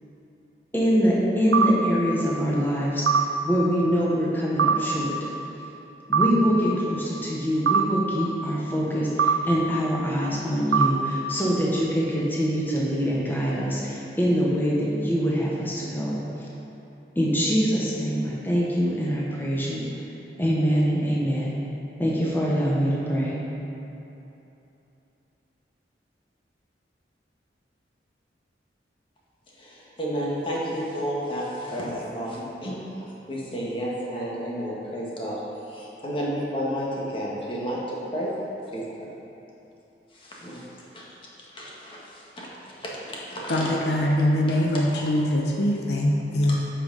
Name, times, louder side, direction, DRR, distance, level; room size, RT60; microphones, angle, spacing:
voice 1, 0.7-3.1 3.4-5.1 6.1-16.5 17.1-19.9 20.4-21.6 22.0-23.4, equal, 10° left, -5 dB, 1.1 m, -24 dB
sound 1, 1.5-1.7 3.1-3.2 4.6-4.8 6.1-6.3 7.7-7.8 9.2-9.4 10.7-10.9, right 6 dB, 90° right, 0.5 m, -20 dB
voice 2, 29.5-35.4 35.7-38.3 38.7-39.1 40.1-40.7 40.9-43.9 44.3-44.8 46.5-46.6, equal, 30° left, -5 dB, 1.4 m, -32 dB
voice 3, 43.5-46.6, left 1 dB, 70° left, 0 dB, 0.7 m, -23 dB
7.9 x 5.6 x 5.3 m, 3.0 s
head